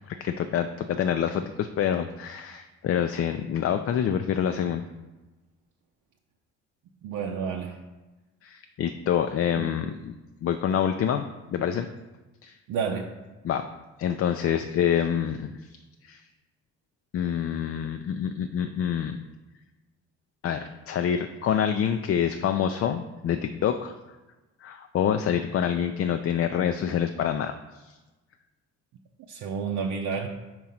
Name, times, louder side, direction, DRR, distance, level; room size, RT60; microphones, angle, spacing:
voice 1, 0.1-4.8 8.4-10.1 10.4-11.2 11.5-11.9 12.4-12.5 13.4-13.6 14.0-15.6 16.0-16.2 17.1-19.2 20.4-23.9 24.6-27.9, left 9 dB, 45° left, 8 dB, 0.4 m, -27 dB
voice 2, 7.0-7.8 9.6-9.7 12.7-13.2 29.3-30.3, right 6 dB, 75° right, 1 dB, 0.6 m, -30 dB
4.6 x 3.7 x 5.6 m, 1.1 s
supercardioid pair, 65°, 31 cm